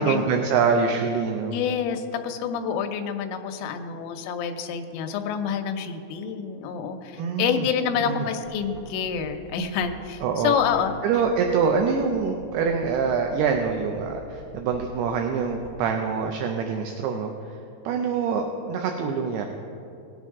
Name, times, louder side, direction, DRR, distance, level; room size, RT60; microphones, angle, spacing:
voice 1, 0.0-1.5 7.2-7.7 8.0-8.3 10.2-10.5 11.0-17.6 17.8-19.5, right 5 dB, 80° right, 3 dB, 2.4 m, -25 dB
voice 2, 1.5-10.9, left 7 dB, 80° left, 6 dB, 2.9 m, -27 dB
sound 1, 8.4-10.9 11.2-15.8, equal, 45° right, 4.2 m, -47 dB
18.5 x 7.7 x 3.6 m, 2.7 s
omnidirectional pair, 5.3 m